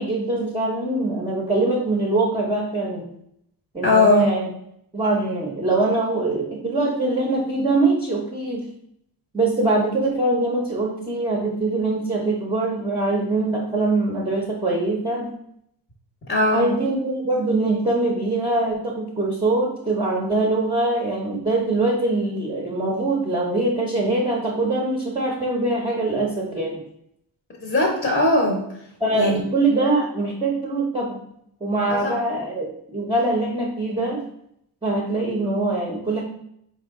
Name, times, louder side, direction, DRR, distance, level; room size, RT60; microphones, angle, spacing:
voice 1, 0.0-3.1 3.7-4.5 4.9-8.7 9.3-15.3 16.5-26.8 29.0-31.2 31.6-32.7 32.9-34.2 34.8-36.2, right 2 dB, 10° right, -2 dB, 0.6 m, -23 dB
voice 2, 3.8-4.3 16.3-16.7 27.6-28.8 29.1-29.4 31.9-32.1, left 2 dB, 25° left, 1 dB, 0.7 m, -20 dB
4.6 x 2.8 x 3.5 m, 0.74 s
cardioid pair, 135°, 45 cm